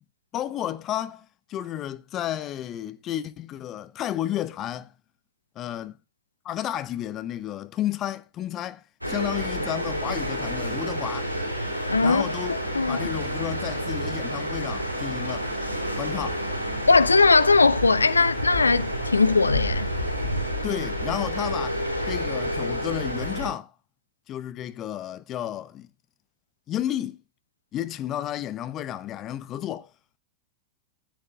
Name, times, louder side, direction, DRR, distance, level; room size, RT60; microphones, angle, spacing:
voice 1, 0.3-4.9 5.6-6.0 6.4-11.3 12.0-12.6 12.9-15.5 16.0-16.4 20.6-23.7 24.3-25.9 26.7-27.2 27.7-29.9, left 12 dB, 30° left, 0.7 m, -32 dB
sound 1, 9.0-23.5, equal, 85° right, 2.8 m, -29 dB
voice 2, 11.9-12.3 12.7-13.1 16.9-19.9, left 4 dB, 80° left, 0.4 m, -19 dB
14.5 x 7.9 x 2.3 m
figure-of-eight pair, 90°, 0 cm